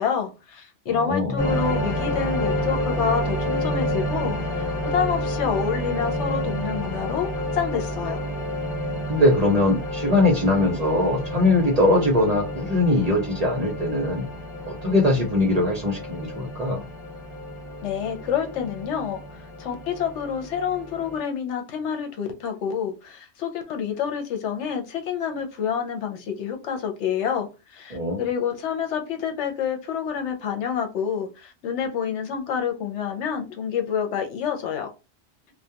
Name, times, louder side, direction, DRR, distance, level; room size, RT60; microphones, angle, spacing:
voice 1, 0.0-8.2 17.8-34.9, left 7 dB, 80° left, 0.9 m, -28 dB
voice 2, 0.9-1.4 9.1-14.2 14.7-16.8 27.9-28.2, left 2 dB, 45° right, 0.6 m, -21 dB
sound 1, 1.4-21.2, equal, 15° left, 1.2 m, -30 dB
2.3 x 2.2 x 2.7 m
omnidirectional pair, 1.2 m